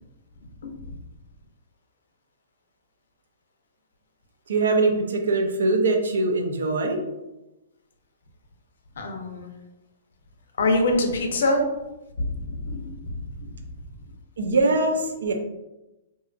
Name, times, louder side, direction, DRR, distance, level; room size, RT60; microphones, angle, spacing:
voice 1, 4.5-7.0 14.4-15.3, right 3 dB, 85° right, 4 dB, 0.4 m, -22 dB
voice 2, 9.0-9.5 10.6-11.6 12.2-12.3 12.6-12.9, left 1 dB, 80° left, 3 dB, 0.5 m, -23 dB
2.7 x 2.3 x 2.3 m, 1.0 s
hypercardioid pair, 150°, 0 cm